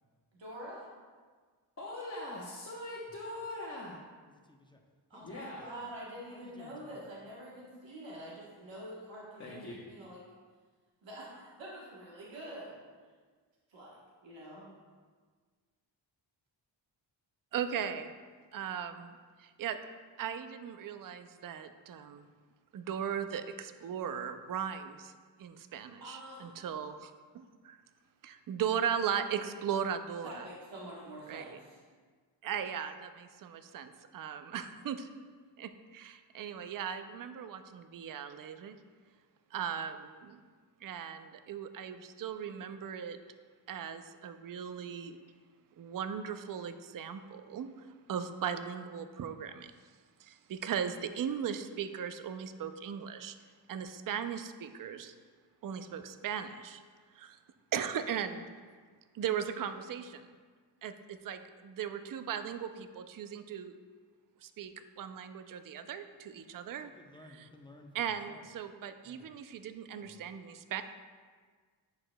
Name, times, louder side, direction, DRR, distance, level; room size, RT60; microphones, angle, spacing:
voice 1, 0.3-0.9 5.1-10.2 11.0-12.8 13.7-14.7 26.0-26.5 30.2-31.8, right 1 dB, 80° right, -5 dB, 1.3 m, -46 dB
voice 2, 1.8-4.0 5.2-5.7 9.4-9.8, left 1 dB, 35° left, -6 dB, 0.9 m, -41 dB
voice 3, 4.3-4.8 5.1-5.8 6.3-7.2 66.8-68.5 69.0-69.3 70.0-70.3, left 1 dB, 10° left, 3 dB, 0.6 m, -56 dB
voice 4, 17.5-18.1 18.5-19.8 20.2-22.3 22.7-25.1 25.4-27.8 28.2-30.5 31.3-31.6 32.4-35.1 35.6-38.8 39.5-40.4 40.8-43.2 43.7-45.2 45.8-49.7 50.2-53.4 53.7-55.1 55.6-56.8 57.1-57.4 57.7-58.5 59.1-60.3 60.8-63.8 64.4-66.9 67.4-67.5 67.9-70.8, right 8 dB, 50° right, 9 dB, 0.5 m, -38 dB
10.5 x 4.8 x 2.2 m, 1.5 s
cardioid pair, 90°, 44 cm